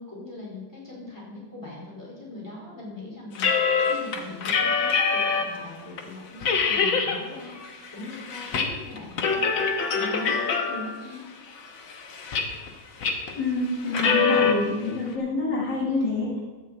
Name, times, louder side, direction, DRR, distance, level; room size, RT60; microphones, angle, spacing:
voice 1, 0.0-9.5 9.9-11.2 15.8-16.1, left 2 dB, 10° left, -6 dB, 4.4 m, -40 dB
sound 1, 3.4-5.6 6.0-6.1 6.4-7.2 7.6-8.7 9.0-11.0 11.6-12.7 13.0-13.3 13.9-14.5, left 5 dB, 80° left, 1.9 m, -24 dB
voice 2, 13.4-16.3, left 2 dB, 65° left, -4 dB, 2.4 m, -27 dB
11.5 x 5.9 x 8.2 m, 1.4 s
omnidirectional pair, 2.1 m